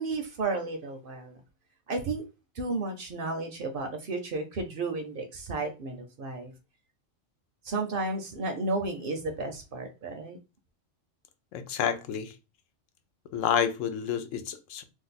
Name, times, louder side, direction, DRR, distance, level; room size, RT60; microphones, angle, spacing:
voice 1, 0.0-1.4 1.9-2.2 2.6-6.5 7.6-10.4, right 3 dB, 60° right, 0.6 m, -33 dB
voice 2, 11.5-12.3 13.3-14.8, left 8 dB, 90° left, 1.0 m, -29 dB
2.6 x 2.4 x 3.9 m
omnidirectional pair, 1.3 m